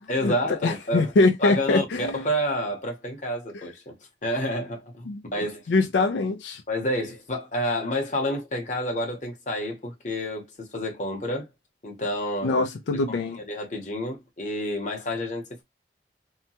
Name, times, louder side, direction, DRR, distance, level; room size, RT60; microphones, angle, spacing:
voice 1, 0.1-1.1 1.4-4.0 4.2-5.6 6.0-6.1 6.7-11.5 11.8-12.6 13.1-15.6, equal, 45° left, 0.9 m, -29 dB
voice 2, 0.6-2.2 5.1-5.2 5.7-6.6 12.4-13.4, left 3 dB, 85° left, 0.4 m, -23 dB
2.8 x 2.2 x 2.7 m
head